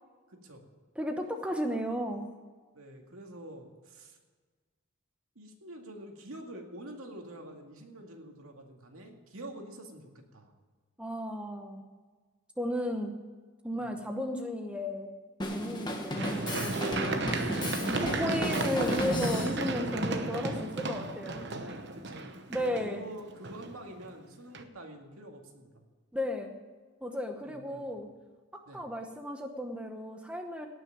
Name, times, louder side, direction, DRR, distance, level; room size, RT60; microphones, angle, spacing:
voice 1, 0.3-0.7 2.7-4.2 5.4-10.5 13.8-13.9 19.8-20.0 22.0-22.4 22.8-25.8 27.4-27.9 28.7-28.8, right 1 dB, 80° right, 2 dB, 2.2 m, -47 dB
voice 2, 1.0-2.3 11.0-11.8 12.6-13.1 13.6-15.1 15.5-17.4 17.8-21.8 22.5-23.0 26.1-26.5 27.0-28.1 28.5-30.7, left 1 dB, 5° right, 4 dB, 0.9 m, -34 dB
Drum kit, 15.4-19.6, left 1 dB, 20° left, 1.4 m, -35 dB
Run, 16.2-24.1 24.5-24.6, right 2 dB, 50° right, 1.0 m, -34 dB
18.5 x 6.3 x 8.8 m, 1.4 s
head